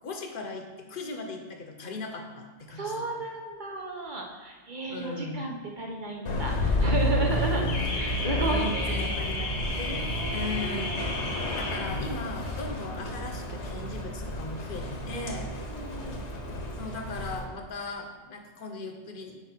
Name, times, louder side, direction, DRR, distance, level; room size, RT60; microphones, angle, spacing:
voice 1, 0.0-3.0 4.9-5.5 7.5-7.8 8.3-15.5 16.8-19.4, left 3 dB, 50° left, 4 dB, 1.0 m, -38 dB
voice 2, 2.7-9.1 9.8-11.1 15.7-16.2, right 2 dB, 45° right, 0 dB, 0.9 m, -34 dB
Car / Alarm, 6.3-17.4, left 1 dB, 80° left, 1.3 m, -30 dB
7.0 x 5.0 x 4.4 m, 1.3 s
omnidirectional pair, 1.2 m